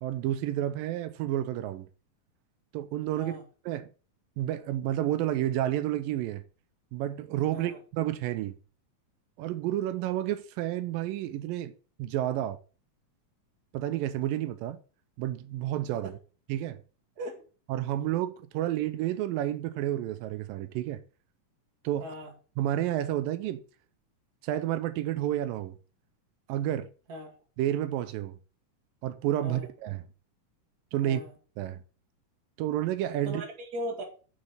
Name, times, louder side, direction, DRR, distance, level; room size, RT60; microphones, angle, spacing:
voice 1, 0.0-1.9 2.7-3.4 3.7-3.9 4.4-6.4 6.9-8.6 9.4-11.7 12.0-12.6 13.7-14.8 15.2-16.1 16.5-16.8 17.7-21.0 21.8-22.1 22.6-23.6 24.4-25.8 26.5-26.9 27.6-28.4 29.0-30.0 30.9-31.2 31.6-31.8 32.6-33.4, right 13 dB, 85° right, 2.4 m, -30 dB
voice 2, 22.0-22.3 27.1-27.3 29.4-29.7 31.0-31.3 33.2-34.0, equal, 30° right, 2.1 m, -38 dB
7.5 x 6.1 x 5.7 m
omnidirectional pair, 3.9 m